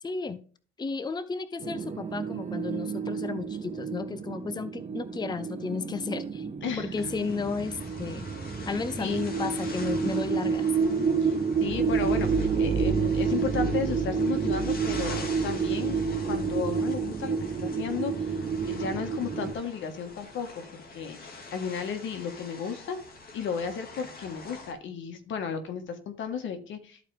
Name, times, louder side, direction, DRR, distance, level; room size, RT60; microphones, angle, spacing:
voice 1, 0.0-0.4 0.8-6.5 6.8-8.3 8.7-10.7 11.0-11.1, left 4 dB, 20° left, 13 dB, 0.6 m, -33 dB
sound 1, 1.6-19.5, right 5 dB, 35° right, 1.0 m, -29 dB
voice 2, 6.6-7.0 9.0-9.2 11.2-16.0 16.2-18.4 18.7-23.0 23.3-27.0, left 6 dB, 75° left, 8 dB, 1.5 m, -34 dB
sound 2, 6.9-24.7, left 3 dB, 50° left, 2.2 m, -45 dB
13.0 x 4.5 x 3.4 m, 0.41 s
cardioid pair, 90°, 20 cm